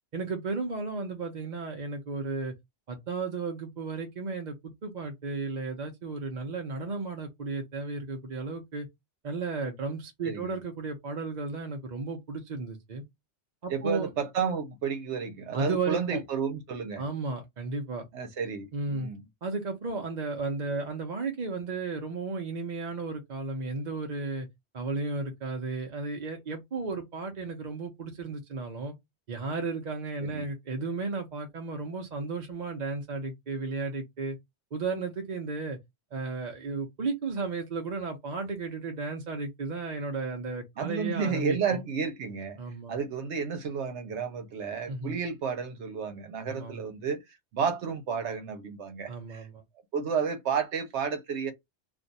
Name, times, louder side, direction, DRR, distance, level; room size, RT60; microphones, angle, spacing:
voice 1, 0.1-2.5 2.9-8.9 9.2-13.0 13.6-14.1 15.5-16.2 17.0-18.1 18.7-19.1 19.4-24.5 24.7-28.9 29.3-34.4 34.7-35.8 36.1-41.8 42.6-42.9 44.9-45.2 46.5-46.8 49.1-49.6, right 3 dB, 45° right, 0.7 m, -34 dB
voice 2, 10.2-10.6 13.7-17.0 18.1-19.2 30.2-30.4 40.8-42.6 42.9-47.2 47.5-49.5 49.9-51.5, right 6 dB, 75° right, 1.0 m, -31 dB
2.5 x 2.3 x 4.0 m
omnidirectional pair, 1.2 m